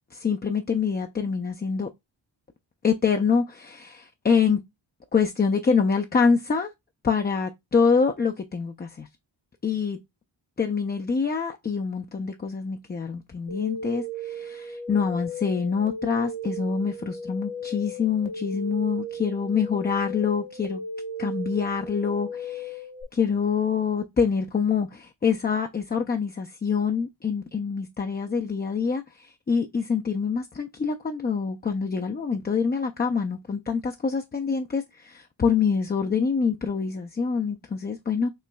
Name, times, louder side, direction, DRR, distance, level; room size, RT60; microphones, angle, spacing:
voice 1, 0.1-1.9 2.8-4.6 5.1-6.7 7.0-9.1 9.6-10.0 10.6-20.8 21.2-22.8 23.1-38.3, left 5 dB, 25° left, 0.4 m, -25 dB
sound 1, 13.5-23.0, equal, 70° left, 0.9 m, -36 dB
5.5 x 3.0 x 2.2 m
cardioid pair, 50°, 46 cm